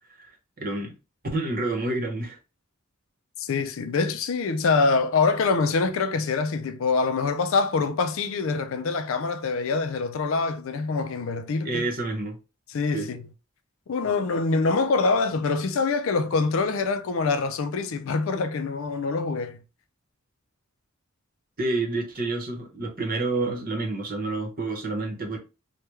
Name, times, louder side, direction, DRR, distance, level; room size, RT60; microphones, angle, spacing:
voice 1, 0.6-0.9 1.3-2.4 11.6-12.4 12.9-13.1 21.6-25.4, right 2 dB, 45° right, 0.9 m, -28 dB
voice 2, 3.4-11.9 12.7-13.3 13.9-19.6, left 4 dB, 65° left, 0.4 m, -25 dB
3.3 x 2.2 x 3.1 m
head